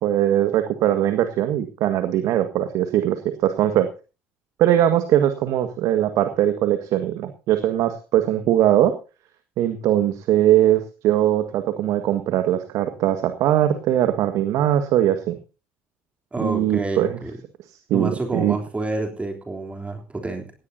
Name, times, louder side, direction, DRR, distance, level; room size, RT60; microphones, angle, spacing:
voice 1, 0.0-3.9 4.6-8.9 9.6-15.3 16.4-17.2 17.9-18.6, right 12 dB, 60° right, 9 dB, 1.7 m, -20 dB
voice 2, 16.3-17.4 17.9-20.5, right 2 dB, 20° right, 3 dB, 3.4 m, -28 dB
17.5 x 17.5 x 2.8 m, 0.33 s
hypercardioid pair, 60°, 6 cm